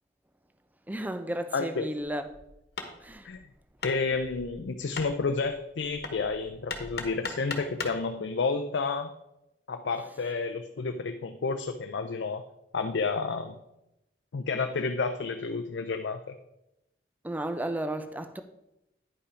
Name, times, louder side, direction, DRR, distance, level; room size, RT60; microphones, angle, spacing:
voice 1, 0.9-2.2 3.0-3.3 17.2-18.4, right 1 dB, 10° right, 0.5 m, -33 dB
voice 2, 1.5-1.9 3.2-3.4 3.8-9.1 9.7-12.4 12.7-13.6 14.3-16.3, left 4 dB, 85° left, 0.5 m, -30 dB
Hammer, 2.3-8.1, left 3 dB, 60° left, 1.2 m, -40 dB
9.8 x 5.5 x 5.0 m
head